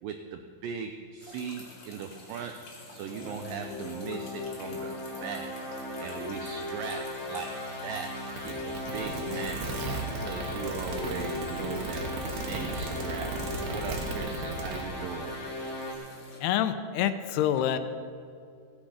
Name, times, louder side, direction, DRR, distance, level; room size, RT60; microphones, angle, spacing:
voice 1, 0.0-13.4 13.7-15.4, right 6 dB, 85° right, 6 dB, 1.9 m, -39 dB
sound 1, 1.2-16.4, left 2 dB, 40° left, 2.6 m, -49 dB
sound 2, 3.1-15.9, left 2 dB, 60° left, 1.0 m, -37 dB
sound 3, 8.4-14.8, right 3 dB, 70° right, 3.1 m, -36 dB
voice 2, 16.4-17.8, left 10 dB, 80° left, 10 dB, 2.6 m, -27 dB
16.0 x 10.0 x 5.0 m, 2.4 s
omnidirectional pair, 4.6 m